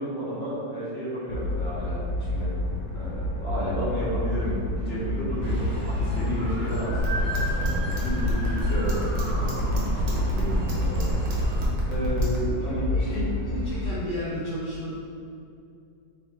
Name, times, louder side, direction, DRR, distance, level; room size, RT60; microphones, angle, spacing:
voice 1, 0.0-2.0 2.3-2.5 2.9-13.3, equal, 50° left, -9 dB, 1.7 m, -32 dB
sound 1, 1.3-13.9, left 1 dB, 70° left, 1.1 m, -29 dB
sound 2, 5.4-11.7, equal, 25° right, 0.5 m, -33 dB
sound 3, 7.0-12.4, right 1 dB, 70° right, 1.4 m, -28 dB
voice 2, 12.6-14.9, equal, 85° right, -9 dB, 0.4 m, -34 dB
3.4 x 3.2 x 3.9 m, 2.5 s
omnidirectional pair, 1.9 m